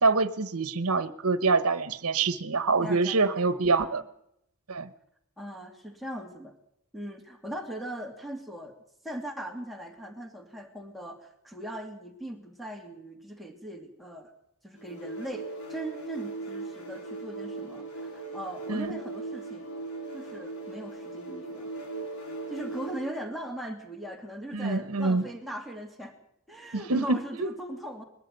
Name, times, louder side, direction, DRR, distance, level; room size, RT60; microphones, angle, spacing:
voice 1, 0.0-4.0 4.7-4.9 18.7-18.9 24.5-25.3 26.7-27.2, right 3 dB, 80° right, 13 dB, 1.2 m, -25 dB
voice 2, 2.8-4.0 5.4-6.5 6.9-8.7 9.0-14.3 14.6-19.7 20.1-21.7 22.5-26.2 26.5-28.0, right 1 dB, ahead, 1 dB, 2.7 m, -39 dB
sound 1, 14.8-23.2, right 3 dB, 85° left, 5.1 m, -39 dB
21.0 x 13.5 x 9.2 m, 0.77 s
head